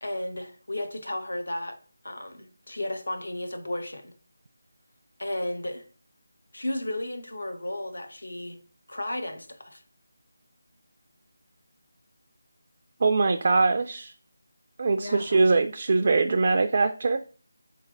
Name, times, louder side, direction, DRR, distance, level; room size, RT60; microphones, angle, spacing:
voice 1, 0.0-1.8 2.0-4.1 5.2-5.9 6.5-8.6 8.9-9.8 15.0-15.4, left 1 dB, 75° left, 0.8 m, -34 dB
voice 2, 13.0-14.1 14.8-17.2, right 3 dB, 45° right, 0.3 m, -22 dB
3.8 x 3.3 x 3.7 m
figure-of-eight pair, 165°, 0 cm